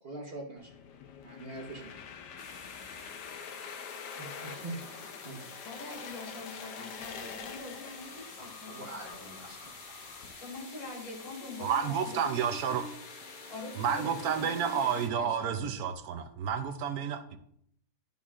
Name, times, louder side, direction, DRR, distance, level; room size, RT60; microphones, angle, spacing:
voice 1, 0.0-0.7 1.2-1.9 3.0-3.2 3.5-3.8 4.2-5.4 8.7-9.6, right 2 dB, 40° right, 1 dB, 1.2 m, -44 dB
sound 1, 0.6-10.3, left 6 dB, 85° left, 1.3 m, -46 dB
sound 2, 2.4-15.1, left 3 dB, 35° left, 0.9 m, -49 dB
voice 2, 5.6-9.5 10.3-12.9 13.5-15.7, left 2 dB, 65° left, -1 dB, 2.9 m, -44 dB
voice 3, 11.6-12.8 13.8-17.4, right 7 dB, 75° right, 7 dB, 1.1 m, -30 dB
12.0 x 5.5 x 2.4 m, 0.69 s
omnidirectional pair, 1.7 m